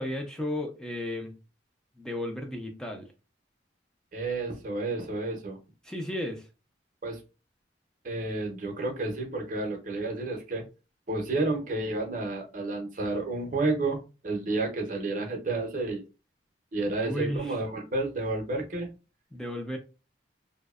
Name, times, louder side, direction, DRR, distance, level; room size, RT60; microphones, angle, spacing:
voice 1, 0.0-1.4 2.0-3.1 5.8-6.5 17.0-17.6 19.3-19.8, left 1 dB, 5° left, 0.4 m, -34 dB
voice 2, 4.1-5.6 7.0-7.2 8.0-10.6 11.1-16.0 16.7-18.9, right 2 dB, 45° right, 0.6 m, -31 dB
2.6 x 2.0 x 2.3 m
head